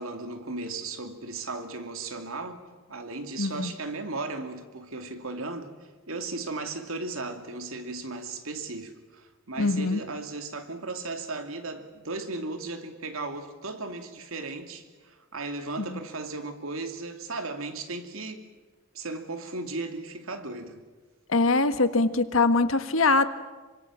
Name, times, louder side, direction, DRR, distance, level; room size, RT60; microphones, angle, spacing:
voice 1, 0.0-2.6 2.9-18.4 18.9-20.8, right 3 dB, 80° right, 2.6 m, -36 dB
voice 2, 3.4-3.7 9.6-10.0 15.8-16.0 21.3-23.2, left 3 dB, 70° left, 1.5 m, -23 dB
27.0 x 24.5 x 7.5 m
head